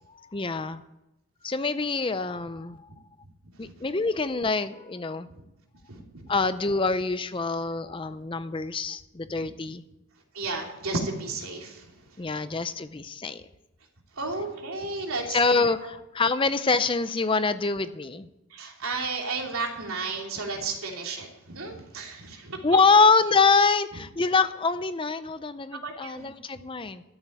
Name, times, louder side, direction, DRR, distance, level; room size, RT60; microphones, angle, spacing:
voice 1, 0.1-0.8 1.4-2.9 3.6-5.3 6.3-9.8 12.2-13.5 15.3-18.3 22.6-27.0, left 4 dB, 25° left, 12 dB, 0.5 m, -25 dB
voice 2, 5.9-6.2 9.3-9.4 10.3-12.2 14.1-15.6 18.5-22.6 25.7-26.3, right 3 dB, 80° right, 1 dB, 2.9 m, -33 dB
13.0 x 7.6 x 10.0 m, 0.92 s
head